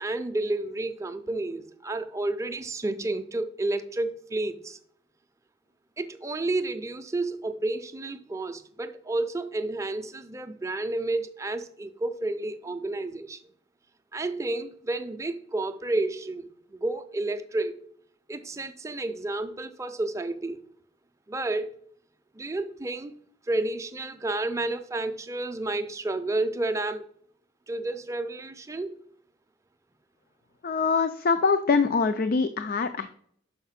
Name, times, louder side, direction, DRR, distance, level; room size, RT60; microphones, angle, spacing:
voice 1, 0.0-4.8 6.0-13.4 14.1-17.8 18.3-20.6 21.3-21.8 22.4-23.1 23.5-27.1 27.7-29.0, right 2 dB, 15° right, 0.5 m, -31 dB
voice 2, 30.6-33.1, left 4 dB, 50° left, 0.4 m, -24 dB
5.7 x 5.2 x 5.7 m
head